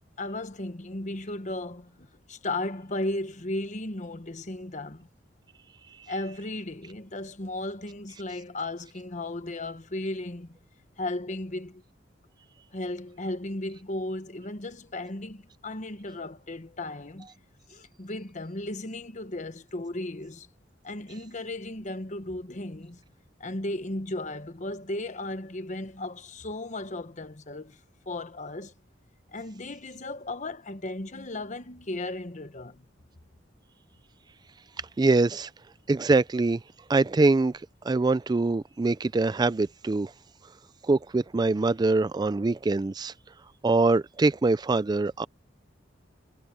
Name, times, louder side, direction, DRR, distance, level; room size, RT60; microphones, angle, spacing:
voice 1, 0.2-5.1 6.1-10.6 11.0-11.8 12.7-17.3 17.7-20.5 20.8-23.0 23.4-27.8 28.1-28.7 29.3-32.8, left 2 dB, 40° left, 1.2 m, -35 dB
voice 2, 35.0-35.5 35.9-36.6 36.9-37.5 37.8-40.1 40.9-43.1 43.6-45.3, right 3 dB, 20° right, 0.3 m, -23 dB
head